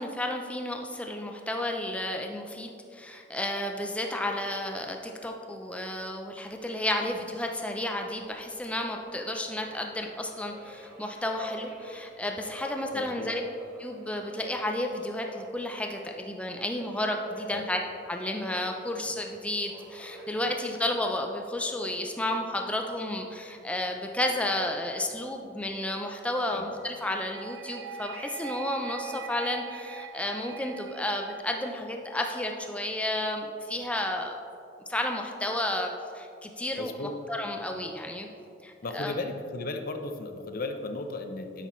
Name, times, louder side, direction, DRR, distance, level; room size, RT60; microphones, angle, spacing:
voice 1, 0.0-13.4 13.8-17.8 18.1-34.4 34.9-38.3 38.6-39.1, left 1 dB, 5° left, 3 dB, 0.4 m, -32 dB
Subway metro underground, 7.3-25.6, equal, 10° right, 1.8 m, -50 dB
voice 2, 12.9-13.3 17.5-17.6 26.5-26.6 36.8-37.1 37.7-37.8 38.8-41.7, left 2 dB, 50° left, 6 dB, 0.6 m, -35 dB
sound 1, 26.9-31.9, right 7 dB, 80° right, 0.5 m, -42 dB
9.8 x 8.0 x 3.1 m, 2.6 s
head